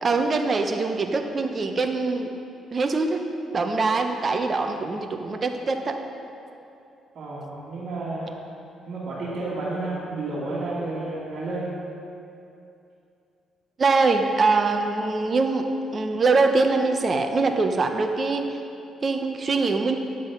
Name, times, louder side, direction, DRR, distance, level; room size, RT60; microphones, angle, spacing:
voice 1, 0.0-2.3 2.7-3.2 3.5-6.0 13.8-15.7 15.9-18.5 19.0-20.0, right 3 dB, 40° right, 5 dB, 0.8 m, -23 dB
voice 2, 7.1-8.3 8.9-11.7, right 2 dB, 60° right, -10 dB, 2.5 m, -31 dB
10.0 x 7.7 x 5.3 m, 2.7 s
cardioid pair, 90°, 0 cm